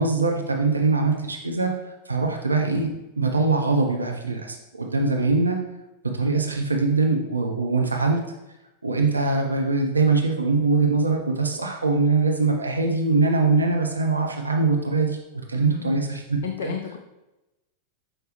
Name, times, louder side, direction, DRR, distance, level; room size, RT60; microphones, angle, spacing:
voice 1, 0.0-5.6 6.0-8.3 8.8-15.2 15.5-16.7, right 3 dB, 80° right, 2 dB, 0.6 m, -22 dB
voice 2, 15.6-16.1 16.4-17.0, left 8 dB, 60° left, 5 dB, 0.5 m, -33 dB
6.4 x 4.6 x 3.2 m, 0.98 s
figure-of-eight pair, 90°, 0 cm